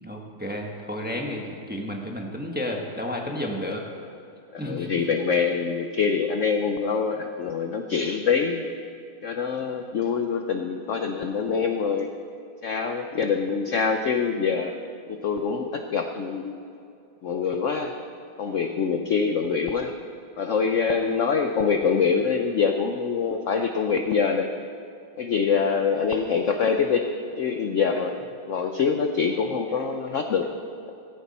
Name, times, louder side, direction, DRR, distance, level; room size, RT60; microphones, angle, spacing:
voice 1, 0.0-3.8 4.6-4.9, left 1 dB, 5° right, 0 dB, 1.1 m, -31 dB
voice 2, 4.5-8.6 9.2-12.1 12.6-14.7 15.1-16.5 17.2-17.9 18.4-19.9 20.4-24.5 25.2-27.1 27.4-28.1 28.5-30.5 30.9-31.0, left 6 dB, 65° left, 5 dB, 0.8 m, -25 dB
16.0 x 15.5 x 4.3 m, 2.5 s
omnidirectional pair, 2.1 m